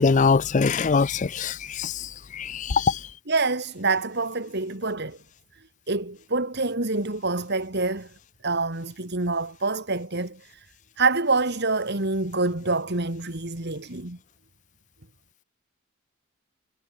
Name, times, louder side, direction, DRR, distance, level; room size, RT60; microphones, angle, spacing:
voice 1, 0.0-1.9 2.4-2.9, left 5 dB, 35° left, 0.4 m, -22 dB
voice 2, 3.3-5.2 5.9-8.1 8.4-10.7 11.0-14.2, right 3 dB, 50° right, 2.5 m, -26 dB
head